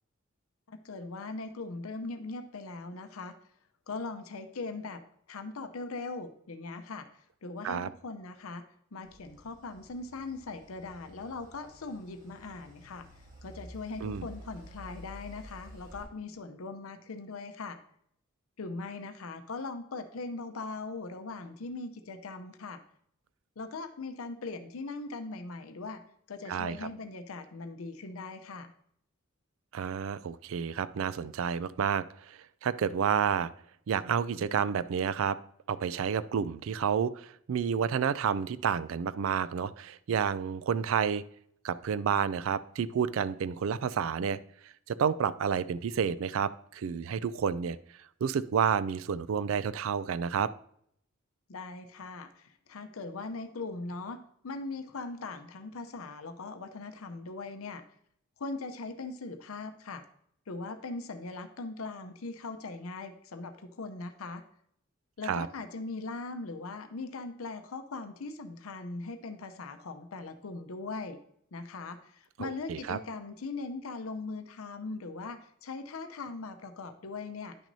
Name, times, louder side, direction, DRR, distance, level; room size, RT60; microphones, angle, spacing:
voice 1, 0.7-3.3 3.9-5.0 5.3-7.1 7.4-8.6 8.9-13.1 13.4-17.8 18.6-22.8 23.6-26.0 26.3-28.7 51.5-57.8 58.4-60.0 60.5-64.4 65.2-71.2 71.5-77.6, left 3 dB, 90° left, 8 dB, 0.6 m, -40 dB
sound 1, 9.0-16.0, left 1 dB, 35° right, 2.7 m, -51 dB
voice 2, 29.7-33.5 33.9-35.4 35.7-41.2 41.6-44.4 44.9-47.8 48.2-50.5 65.3-65.5 72.4-73.0, right 7 dB, 75° right, 16 dB, 0.3 m, -30 dB
10.0 x 6.0 x 2.7 m, 0.69 s
head